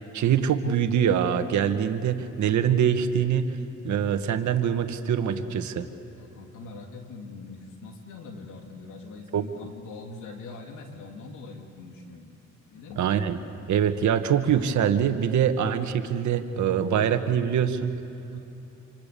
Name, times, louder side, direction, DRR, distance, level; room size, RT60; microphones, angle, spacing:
voice 1, 0.1-3.6 3.8-5.9 9.3-9.4 13.0-13.4 13.7-17.9, right 8 dB, 70° right, 8 dB, 1.6 m, -24 dB
voice 2, 6.1-12.3 12.7-13.1 18.3-18.4, left 3 dB, 90° left, 2 dB, 3.2 m, -42 dB
27.0 x 25.5 x 7.0 m, 2.9 s
cardioid pair, 90°, 30 cm